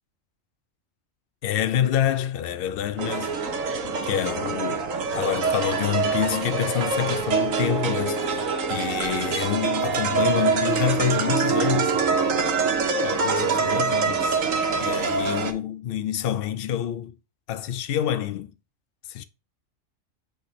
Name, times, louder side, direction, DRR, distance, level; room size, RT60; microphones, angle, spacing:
voice 1, 1.4-3.4 4.0-4.9 5.1-12.1 13.0-14.4 14.8-17.2 17.5-18.5 19.1-19.2, left 10 dB, 60° left, 0.6 m, -27 dB
sound 1, 3.0-15.5, right 5 dB, 85° right, 1.3 m, -25 dB
8.2 x 3.2 x 4.1 m
omnidirectional pair, 1.3 m